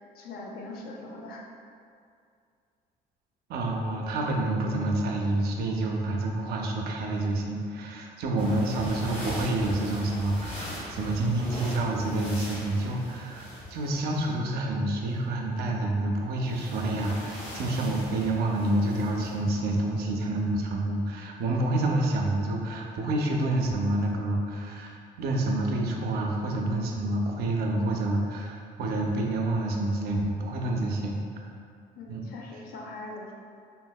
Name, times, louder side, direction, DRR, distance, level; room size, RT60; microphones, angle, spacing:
voice 1, 0.0-1.4 32.0-33.3, left 2 dB, 65° left, 0 dB, 0.5 m, -41 dB
voice 2, 3.5-31.2 32.1-32.3, right 2 dB, 70° right, 0 dB, 0.4 m, -28 dB
sound 1, 8.4-14.3 16.4-19.4, equal, 35° left, 0.9 m, -40 dB
3.6 x 2.0 x 2.2 m, 2.4 s
cardioid pair, 110°, 17 cm